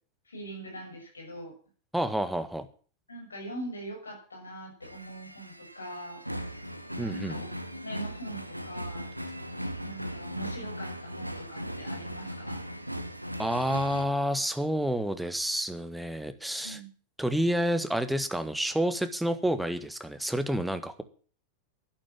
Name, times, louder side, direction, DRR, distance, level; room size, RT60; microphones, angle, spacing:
voice 1, 0.3-1.5 3.1-6.2 7.0-7.5 7.8-9.1 9.8-12.6 16.6-16.9, right 1 dB, 75° left, 4 dB, 6.1 m, -42 dB
voice 2, 1.9-2.6 7.0-7.4 13.4-16.8 17.2-21.0, equal, 5° right, 10 dB, 1.6 m, -29 dB
sound 1, 4.8-14.1, equal, 90° right, 1.4 m, -38 dB
12.0 x 11.0 x 7.3 m, 0.41 s
figure-of-eight pair, 90°, 0 cm